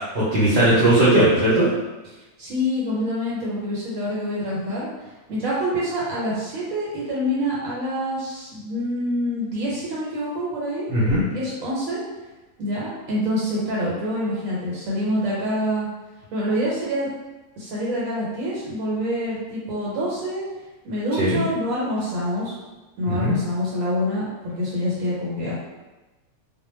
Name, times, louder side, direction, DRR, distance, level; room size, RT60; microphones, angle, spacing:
voice 1, 0.1-1.7 10.9-11.2 21.2-21.4 23.1-23.3, right 1 dB, 55° right, -8 dB, 0.8 m, -18 dB
voice 2, 2.1-4.9 5.3-10.9 11.3-12.0 12.6-15.9 16.3-17.1 17.6-20.4 20.8-22.6 23.0-25.6, equal, 80° right, -6 dB, 1.1 m, -26 dB
2.2 x 2.1 x 3.1 m, 1.1 s
omnidirectional pair, 1.4 m